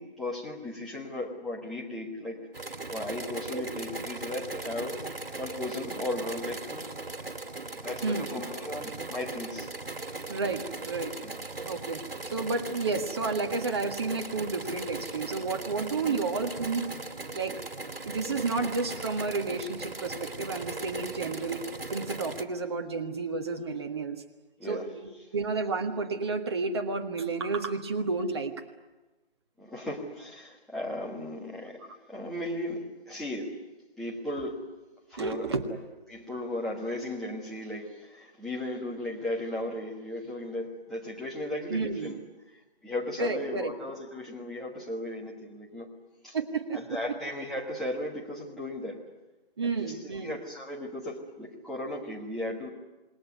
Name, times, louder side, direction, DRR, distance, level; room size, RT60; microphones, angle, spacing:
voice 1, 0.0-2.4 2.9-5.0 5.4-6.9 7.8-9.7 11.2-11.4 16.0-16.2 24.6-24.9 29.6-33.5 34.0-34.6 35.1-35.8 36.1-42.2 42.8-45.9 46.2-46.4 46.7-49.0 49.6-52.7, left 1 dB, ahead, -7 dB, 1.5 m, -36 dB
sound 1, 2.5-22.4, right 3 dB, 65° right, 2.9 m, -39 dB
voice 2, 10.3-11.1 11.6-16.9 17.3-17.6 18.0-21.6 21.9-24.2 24.7-28.6 31.9-32.0 35.2-35.6 41.7-42.1 43.2-43.7 46.3-46.9 49.6-50.4, right 4 dB, 25° right, 4 dB, 1.6 m, -31 dB
28.5 x 20.5 x 9.6 m, 1.1 s
figure-of-eight pair, 155°, 31 cm